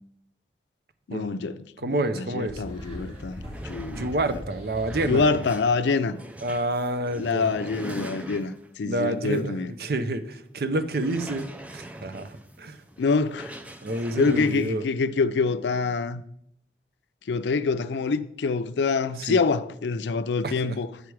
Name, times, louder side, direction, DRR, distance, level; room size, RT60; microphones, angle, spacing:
voice 1, 1.1-4.4 5.0-6.2 7.2-9.7 13.0-13.6 14.2-16.2 17.3-20.9, left 4 dB, 85° left, 0.4 m, -26 dB
voice 2, 1.8-2.6 3.9-5.2 6.4-7.5 8.8-9.5 9.8-12.8 13.8-14.8 19.3-19.4 20.4-20.8, right 1 dB, 60° right, 0.5 m, -28 dB
sound 1, 2.4-5.9, equal, 40° right, 3.3 m, -39 dB
sound 2, 2.7-2.8 3.1-8.8 9.3-9.4 9.8-9.9 10.9-14.7, right 1 dB, 10° right, 0.4 m, -42 dB
8.1 x 4.8 x 4.6 m
head